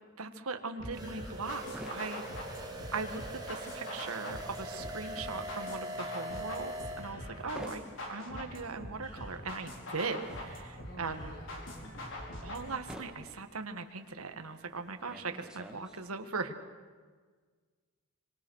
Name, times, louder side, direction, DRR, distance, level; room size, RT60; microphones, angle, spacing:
voice 1, 0.2-2.2 2.9-7.8 8.1-11.3 12.4-16.5, right 4 dB, 75° right, 7 dB, 1.8 m, -39 dB
sound 1, 0.8-12.8, left 1 dB, 60° left, 5.2 m, -44 dB
sound 2, 0.9-3.4 3.7-16.3, equal, 5° right, 2.0 m, -51 dB
sound 3, 0.9-7.1, right 1 dB, 20° right, 2.7 m, -42 dB
voice 2, 10.8-12.1, equal, 45° left, 3 dB, 4.8 m, -53 dB
26.0 x 25.5 x 6.5 m, 1.5 s
head